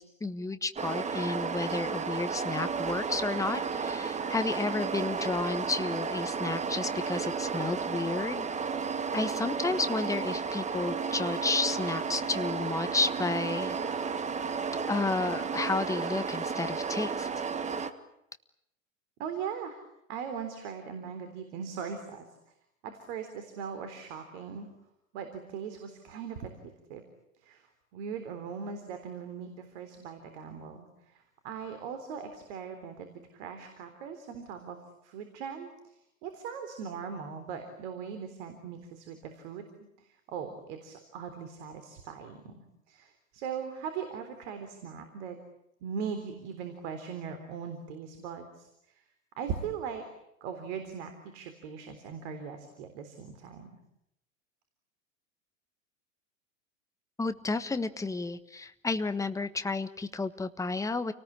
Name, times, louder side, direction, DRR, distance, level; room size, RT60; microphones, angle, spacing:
voice 1, 0.0-8.5 9.1-13.8 14.9-17.3 57.2-61.1, left 3 dB, 10° left, 11 dB, 1.4 m, -32 dB
sound 1, 0.8-17.9, right 5 dB, 15° right, 1.7 m, -33 dB
voice 2, 19.2-19.8 20.1-22.3 22.8-24.7 25.1-26.5 26.9-27.0 27.4-27.6 27.9-34.8 35.0-45.4 45.8-48.7 49.4-50.0 50.4-53.7, right 7 dB, 55° right, 8 dB, 3.8 m, -40 dB
29.0 x 19.0 x 10.0 m, 0.80 s
hypercardioid pair, 100°, 40 cm